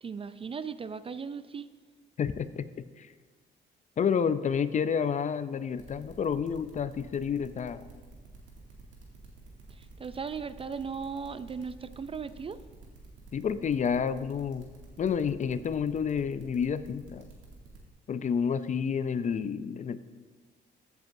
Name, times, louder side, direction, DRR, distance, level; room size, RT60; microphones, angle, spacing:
voice 1, 0.0-1.7 9.7-12.6, right 6 dB, 30° right, 13 dB, 0.3 m, -37 dB
voice 2, 2.2-2.6 3.0-3.1 4.0-7.8 13.3-14.7 15.0-17.3 18.1-20.0, left 7 dB, 40° left, 14 dB, 0.4 m, -29 dB
sound 1, 5.8-17.9, right 3 dB, 75° right, 2.2 m, -51 dB
14.5 x 8.0 x 2.6 m, 1.4 s
cardioid pair, 90°, 20 cm